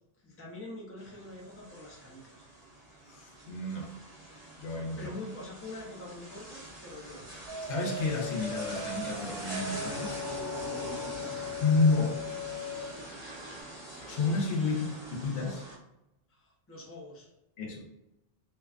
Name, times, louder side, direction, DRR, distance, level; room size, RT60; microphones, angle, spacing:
voice 1, 0.2-2.5 5.0-7.2 10.7-11.3 14.7-14.8 16.3-17.3, left 2 dB, 15° left, -4 dB, 0.5 m, -45 dB
sound 1, 1.0-15.8, right 1 dB, 25° right, 1.0 m, -44 dB
voice 2, 3.0-4.0 4.6-5.1 7.7-10.2 11.6-12.2 14.0-14.9 15.2-15.7 17.6-17.9, left 3 dB, 90° left, 0 dB, 1.0 m, -30 dB
sound 2, 7.5-13.6, left 4 dB, 75° right, 0.9 m, -39 dB
2.5 x 2.2 x 2.3 m, 0.91 s
omnidirectional pair, 1.2 m